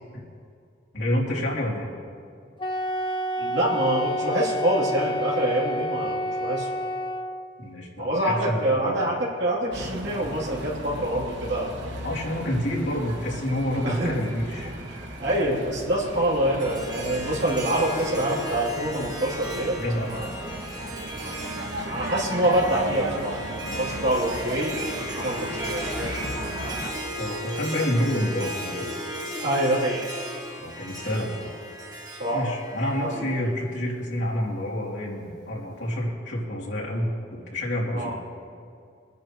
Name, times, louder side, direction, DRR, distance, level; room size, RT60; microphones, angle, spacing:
voice 1, 0.9-1.9 7.6-8.9 12.0-14.7 19.8-20.2 23.7-23.8 27.2-28.9 30.6-31.5 32.3-37.1 37.5-38.1, equal, 75° left, -4 dB, 3.1 m, -28 dB
Wind instrument woodwind instrument, 2.6-7.5, equal, 25° left, 0.6 m, -29 dB
voice 2, 3.4-6.7 8.0-11.8 13.8-14.2 15.2-19.8 20.1-20.3 21.8-23.4 23.8-24.9 25.1-26.1 29.4-30.0 32.2-32.6 33.0-33.2 37.9-38.1, right 1 dB, 65° right, -7 dB, 3.4 m, -25 dB
sound 1, 9.7-26.9, right 1 dB, 90° right, 2.0 m, -36 dB
Harp, 16.6-33.9, equal, 20° right, 1.3 m, -36 dB
23.5 x 10.5 x 3.1 m, 2.3 s
head